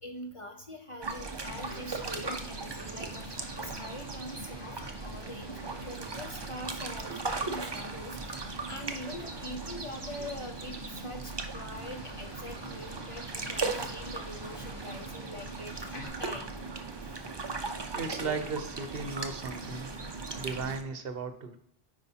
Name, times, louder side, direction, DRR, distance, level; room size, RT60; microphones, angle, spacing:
voice 1, 0.0-16.6, equal, 35° left, 3 dB, 0.6 m, -44 dB
sound 1, 1.0-20.8, right 3 dB, 30° right, 0.6 m, -38 dB
sound 2, 1.4-16.1, left 3 dB, 55° left, 1.3 m, -49 dB
voice 2, 17.9-19.9 20.4-21.6, right 4 dB, 65° right, 8 dB, 0.9 m, -36 dB
9.4 x 4.8 x 2.8 m, 0.71 s
omnidirectional pair, 1.1 m